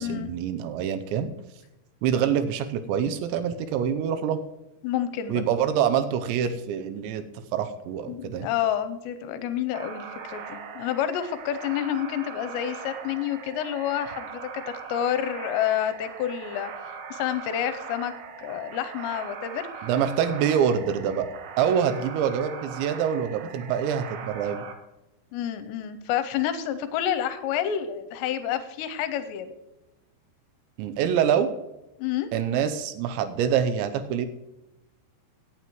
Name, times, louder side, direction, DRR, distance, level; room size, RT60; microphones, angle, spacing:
voice 1, 0.0-1.3 2.0-4.4 5.3-7.2 7.5-8.5 19.8-21.3 21.6-24.6 30.8-31.5 32.3-34.3, right 8 dB, 85° right, 10 dB, 3.0 m, -25 dB
voice 2, 4.8-5.4 8.1-18.1 18.4-19.8 25.3-29.5 32.0-32.3, left 10 dB, 85° left, 10 dB, 2.8 m, -29 dB
sound 1, 9.7-24.7, right 6 dB, 70° right, 2.2 m, -40 dB
17.0 x 9.0 x 3.1 m, 0.96 s
omnidirectional pair, 5.2 m